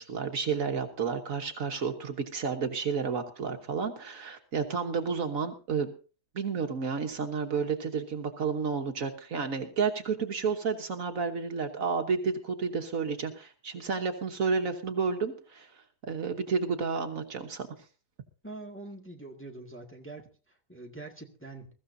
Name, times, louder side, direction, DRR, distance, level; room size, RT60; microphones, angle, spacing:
voice 1, 0.0-5.9 6.3-15.7 16.0-17.7, right 5 dB, 60° right, 5 dB, 1.5 m, -31 dB
voice 2, 18.4-21.7, right 2 dB, 10° left, 1 dB, 1.6 m, -44 dB
21.5 x 14.5 x 2.7 m, 0.36 s
omnidirectional pair, 1.7 m